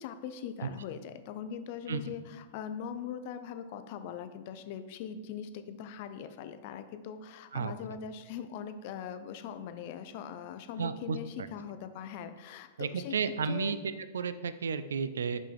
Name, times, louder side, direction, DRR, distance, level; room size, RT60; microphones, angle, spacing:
voice 1, 0.0-13.1 13.4-13.7, left 8 dB, 55° left, 9 dB, 0.5 m, -41 dB
voice 2, 10.8-11.2 12.8-13.8 14.1-15.4, right 6 dB, 85° right, 12 dB, 0.3 m, -32 dB
5.3 x 5.3 x 3.4 m, 1.4 s
hypercardioid pair, 120°, 0 cm